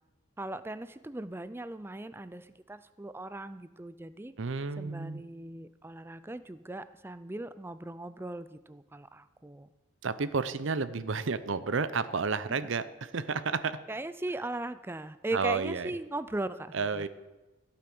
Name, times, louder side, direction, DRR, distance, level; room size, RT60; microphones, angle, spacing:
voice 1, 0.4-4.3 4.8-9.7 12.6-12.7 13.9-17.1, right 2 dB, 10° right, 14 dB, 0.4 m, -38 dB
voice 2, 4.4-5.2 10.0-13.8 15.3-15.9 16.7-17.1, right 4 dB, 70° right, 14 dB, 0.7 m, -31 dB
15.0 x 8.5 x 6.1 m, 1.1 s
head